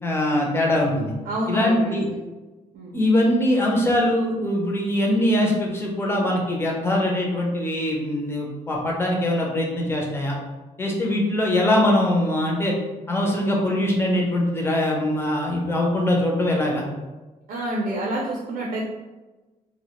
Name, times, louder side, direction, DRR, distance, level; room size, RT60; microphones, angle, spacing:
voice 1, 0.0-1.1 1.5-2.0 2.9-10.4 10.8-12.7 13.1-16.8, left 1 dB, 15° left, -1 dB, 0.4 m, -22 dB
voice 2, 1.2-2.2 2.7-3.0 17.5-18.8, right 1 dB, 80° right, -3 dB, 0.5 m, -28 dB
2.2 x 2.0 x 2.9 m, 1.2 s
wide cardioid pair, 170°, 14 cm